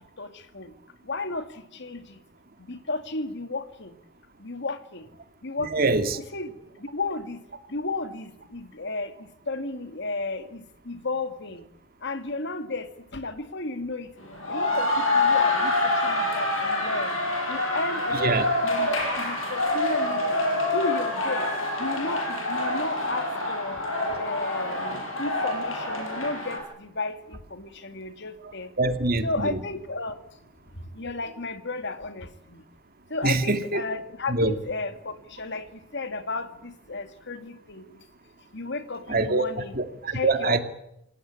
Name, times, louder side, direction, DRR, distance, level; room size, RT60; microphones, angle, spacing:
voice 1, 1.1-1.4 1.8-2.0 2.7-3.9 4.4-5.0 5.4-5.9 6.3-6.5 6.9-7.4 7.7-9.1 9.5-11.6 12.0-12.9 13.1-14.1 14.5-15.7 16.0-17.1 17.5-20.4 20.7-21.5 21.8-23.8 24.2-28.7 29.2-30.1 31.0-32.3 33.1-35.6 35.9-37.8 38.5-39.8 40.1-40.6, left 3 dB, 60° left, 10 dB, 2.3 m, -33 dB
voice 2, 5.7-6.2 18.2-18.4 28.8-29.6 33.2-33.8 34.3-34.5 39.1-39.4 39.7-40.6, right 3 dB, 50° right, 8 dB, 2.6 m, -24 dB
sound 1, 14.2-26.6, left 2 dB, 85° left, 7.8 m, -26 dB
28.5 x 18.5 x 8.8 m, 0.81 s
head